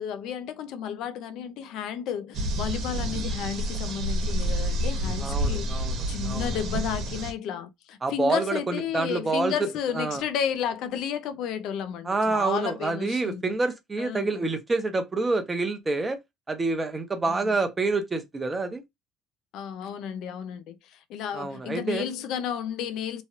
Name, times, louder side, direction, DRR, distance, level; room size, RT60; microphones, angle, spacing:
voice 1, 0.0-13.6 14.0-14.4 17.3-17.5 19.5-23.2, left 8 dB, 70° left, 0.5 m, -32 dB
sound 1, 2.3-7.3, equal, 55° right, 1.1 m, -28 dB
voice 2, 5.2-6.0 6.2-6.5 8.0-9.7 9.9-10.2 12.0-16.2 16.5-18.8 21.3-22.0, right 3 dB, 20° right, 0.7 m, -27 dB
3.1 x 2.3 x 2.8 m
cardioid pair, 115°, 0 cm